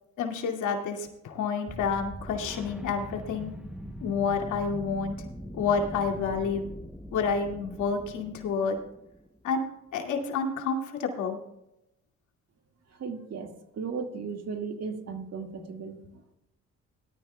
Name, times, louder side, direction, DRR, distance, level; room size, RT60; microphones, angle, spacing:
voice 1, 0.2-3.5 4.0-5.2 5.5-6.7 7.1-8.8 9.4-9.6 9.9-11.4, left 5 dB, 85° left, 2 dB, 2.4 m, -29 dB
sound 1, 1.7-9.4, equal, 5° right, 0.7 m, -42 dB
voice 2, 12.9-16.2, right 5 dB, 55° right, 5 dB, 1.9 m, -36 dB
18.5 x 12.5 x 2.3 m, 0.87 s
cardioid pair, 90°, 30 cm